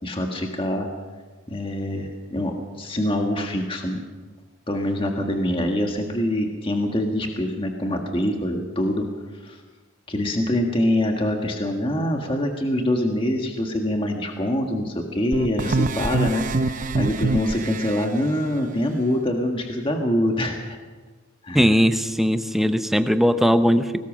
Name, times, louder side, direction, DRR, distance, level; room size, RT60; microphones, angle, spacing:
voice 1, 0.0-0.9 1.5-4.0 4.7-9.1 9.3-9.6 10.1-20.8 21.4-21.7, left 1 dB, 25° left, 2 dB, 1.7 m, -25 dB
sound 1, 15.3-18.0, right 3 dB, 40° right, 0.6 m, -24 dB
voice 2, 21.5-24.1, equal, ahead, 9 dB, 0.7 m, -19 dB
22.0 x 19.0 x 6.3 m, 1.4 s
head